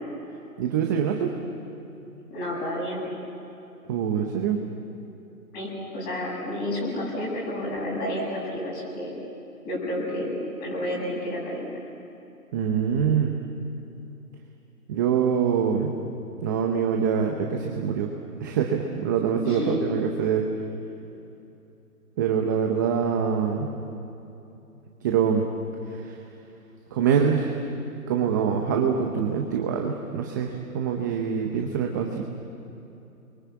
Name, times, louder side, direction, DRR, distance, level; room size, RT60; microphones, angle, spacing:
voice 1, 0.6-1.3 3.9-4.6 12.5-13.3 14.9-16.0 16.4-18.1 18.4-20.5 22.2-23.7 25.0-25.4 25.9-26.2 26.9-27.7 28.1-32.2, right 7 dB, 15° right, 2 dB, 0.7 m, -24 dB
voice 2, 2.3-3.1 5.5-9.1 9.6-11.7 19.4-19.8, left 1 dB, 20° left, -3 dB, 7.9 m, -30 dB
29.0 x 23.0 x 8.3 m, 2.9 s
hypercardioid pair, 150°, 46 cm